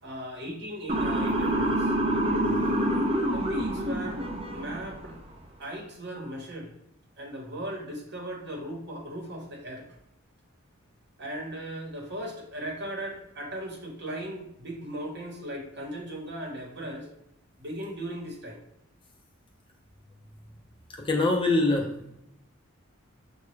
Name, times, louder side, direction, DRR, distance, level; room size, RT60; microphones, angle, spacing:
voice 1, 0.0-1.9 3.3-4.2 4.5-5.2 5.6-6.7 7.2-9.9 11.2-17.1 17.6-18.6, right 1 dB, 55° right, 0 dB, 1.0 m, -37 dB
Motor vehicle (road) / Siren, 0.9-5.0, right 1 dB, 30° right, 0.5 m, -27 dB
voice 2, 20.9-22.1, left 2 dB, 25° left, 1 dB, 0.5 m, -24 dB
5.8 x 2.3 x 3.1 m, 0.78 s
head